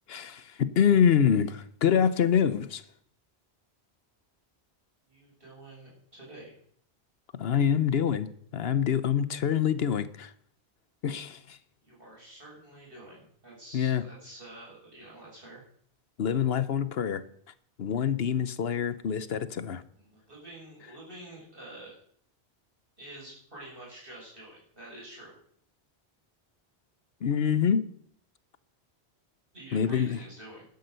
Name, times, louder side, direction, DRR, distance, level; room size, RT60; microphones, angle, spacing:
voice 1, 0.1-2.8 7.4-10.3 11.0-11.6 13.7-14.0 16.2-17.2 17.8-19.8 27.2-27.9 29.7-30.2, left 8 dB, 70° left, 14 dB, 1.0 m, -26 dB
voice 2, 5.1-6.5 11.8-15.6 20.0-22.0 23.0-25.3 29.5-30.7, right 1 dB, 55° right, -5 dB, 7.6 m, -48 dB
12.0 x 10.5 x 6.7 m, 0.63 s
omnidirectional pair, 1.1 m